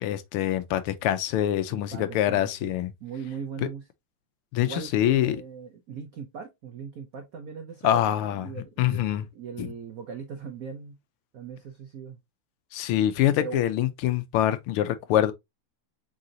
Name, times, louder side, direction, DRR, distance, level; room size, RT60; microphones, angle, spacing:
voice 1, 0.0-2.9 3.6-3.7 4.5-5.4 7.8-8.5 8.8-9.2 9.6-9.7 12.7-15.3, left 12 dB, 80° left, 1.5 m, -25 dB
voice 2, 1.7-2.7 3.0-3.9 4.6-11.0 11.3-12.2 13.4-13.6, right 6 dB, 75° right, 0.8 m, -39 dB
4.8 x 3.8 x 2.7 m
omnidirectional pair, 2.4 m